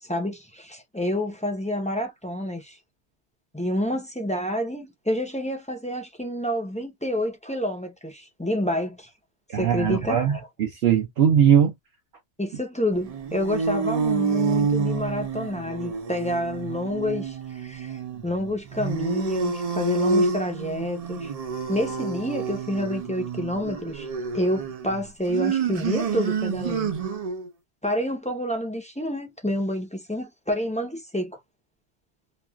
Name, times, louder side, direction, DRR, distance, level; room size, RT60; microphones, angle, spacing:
voice 1, 0.0-2.8 3.5-9.1 9.5-10.5 12.4-21.3 21.7-24.1 24.3-26.9 27.8-31.4, left 1 dB, 10° left, 0.5 m, -28 dB
voice 2, 9.5-11.7, right 8 dB, 65° right, 0.9 m, -20 dB
sound 1, 13.0-27.5, right 5 dB, 50° right, 0.5 m, -28 dB
3.1 x 2.3 x 2.2 m
omnidirectional pair, 1.1 m